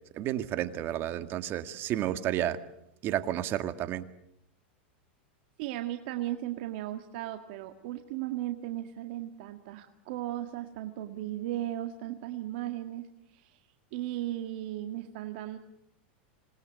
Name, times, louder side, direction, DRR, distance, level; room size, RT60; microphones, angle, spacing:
voice 1, 0.1-2.6 3.0-4.1, right 12 dB, 40° right, 9 dB, 1.9 m, -31 dB
voice 2, 5.6-13.6 13.9-15.6, right 13 dB, 60° right, 6 dB, 1.8 m, -36 dB
26.5 x 21.0 x 8.3 m, 0.77 s
supercardioid pair, 125°, 6 cm